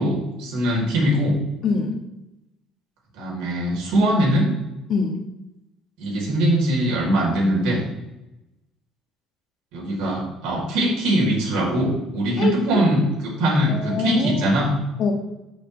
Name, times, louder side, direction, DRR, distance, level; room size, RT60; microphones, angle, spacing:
voice 1, 0.0-1.3 3.2-4.5 6.0-7.8 9.7-14.7, right 1 dB, 85° right, -2 dB, 3.9 m, -21 dB
voice 2, 1.6-2.0 4.9-5.2 12.4-12.8 13.7-14.6 15.0-15.1, left 4 dB, 45° left, 4 dB, 1.3 m, -24 dB
13.0 x 6.3 x 3.4 m, 0.94 s
cardioid pair, 145°, 0 cm